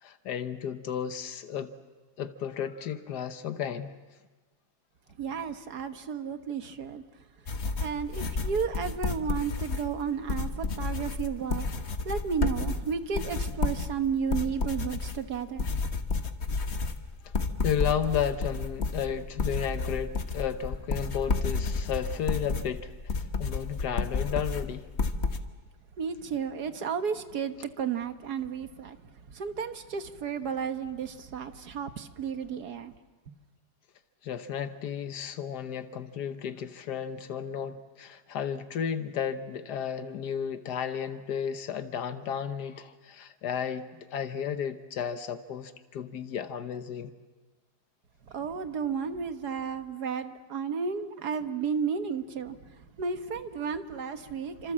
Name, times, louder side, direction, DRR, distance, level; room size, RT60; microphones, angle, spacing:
voice 1, 0.0-1.7 2.2-3.9 17.2-17.3 17.6-24.9 34.2-47.1, left 8 dB, 90° left, 1.6 m, -33 dB
voice 2, 5.2-7.0 7.8-15.7 26.0-29.0 29.3-32.9 33.3-33.4 48.3-54.7, right 6 dB, 80° right, 1.8 m, -33 dB
sound 1, 7.5-25.4, left 4 dB, 45° left, 1.5 m, -31 dB
28.0 x 26.5 x 7.5 m
omnidirectional pair, 1.7 m